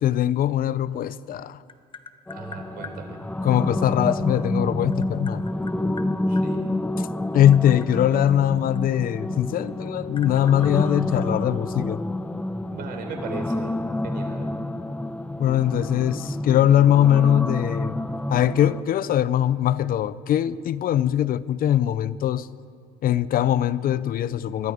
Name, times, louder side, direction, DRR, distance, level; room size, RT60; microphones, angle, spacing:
voice 1, 0.0-1.6 3.4-5.4 7.0-7.1 7.3-12.0 15.4-18.0 18.3-22.5 23.0-24.7, left 11 dB, 60° left, 0.6 m, -21 dB
Tap, 1.1-3.0 4.3-6.5 7.2-9.4 9.7-11.7, left 5 dB, 30° left, 1.1 m, -44 dB
sound 1, 2.3-18.8, left 1 dB, 10° left, 0.7 m, -29 dB
voice 2, 2.3-3.2 6.3-6.6 12.7-13.8 14.0-14.5, right 5 dB, 65° right, 4.0 m, -37 dB
24.5 x 21.5 x 5.1 m
cardioid pair, 110°, 17 cm